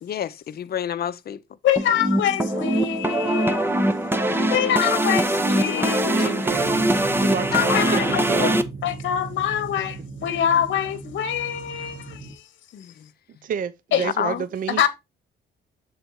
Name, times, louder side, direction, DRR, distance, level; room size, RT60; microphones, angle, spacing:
voice 1, 0.0-1.4 4.3-6.4 7.5-8.2 12.7-13.1 14.0-14.4, left 9 dB, 50° left, 0.6 m, -31 dB
voice 2, 1.6-3.9 4.5-6.3 7.5-8.5 8.8-12.4 13.9-14.1 14.8-14.9, left 10 dB, 70° left, 1.0 m, -25 dB
sound 1, 1.8-8.6, right 1 dB, 10° right, 0.7 m, -22 dB
voice 3, 6.1-6.8 7.2-8.6 13.4-14.9, right 7 dB, 45° right, 0.5 m, -30 dB
sound 2, 6.5-12.3, right 4 dB, 70° right, 1.9 m, -37 dB
6.8 x 4.0 x 4.5 m
cardioid pair, 90°, 20 cm